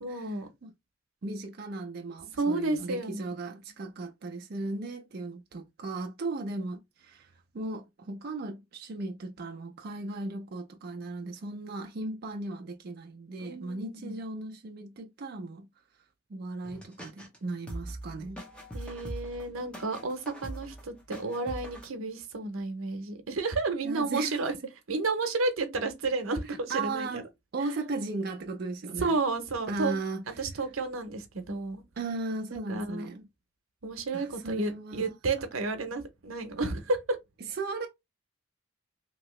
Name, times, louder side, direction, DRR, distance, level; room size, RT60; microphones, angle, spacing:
voice 1, 0.0-0.5 2.4-3.3 13.4-14.2 18.7-24.5 24.9-27.2 29.0-29.9 30.4-31.8 32.5-33.1 33.8-37.2, right 3 dB, 85° right, 0.8 m, -31 dB
voice 2, 1.2-15.7 16.3-18.4 23.8-24.5 26.5-27.2 27.5-29.1 29.7-30.4 32.0-33.3 34.1-35.1 37.5-37.9, right 3 dB, 50° right, 0.4 m, -36 dB
sound 1, 16.6-17.4 17.7-21.9, right 1 dB, 5° left, 0.8 m, -42 dB
2.9 x 2.7 x 3.0 m
head